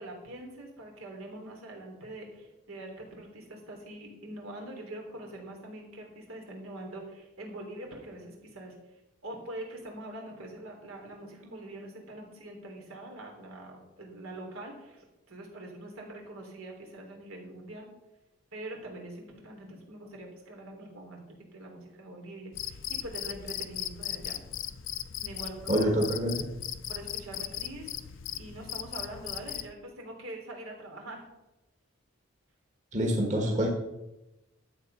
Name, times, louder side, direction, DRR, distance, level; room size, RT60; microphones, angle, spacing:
voice 1, 0.0-17.9 18.5-24.4 25.2-25.9 26.9-31.3, right 1 dB, 85° right, 1 dB, 3.4 m, -44 dB
Cricket, 22.5-29.7, left 11 dB, 60° left, 0.5 m, -38 dB
voice 2, 25.7-26.5 32.9-33.7, equal, 35° right, 0 dB, 1.8 m, -26 dB
12.5 x 7.7 x 5.7 m, 0.96 s
head